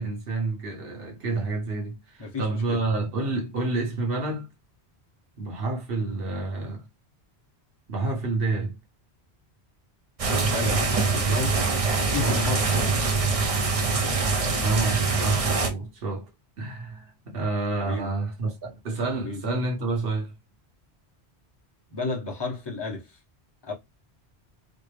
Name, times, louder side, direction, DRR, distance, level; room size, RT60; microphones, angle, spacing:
voice 1, 0.0-4.5 5.4-6.9 7.9-8.8 12.2-12.5 14.5-16.3 16.6-20.3, right 3 dB, 60° right, 1.2 m, -29 dB
voice 2, 2.2-2.8 10.4-11.6 12.0-12.6 17.8-18.1 19.2-19.4 21.9-23.2 23.6-23.7, left 4 dB, 25° left, 1.0 m, -32 dB
sound 1, 10.2-15.7, right 4 dB, 40° right, 0.7 m, -24 dB
4.3 x 2.0 x 3.3 m
omnidirectional pair, 1.1 m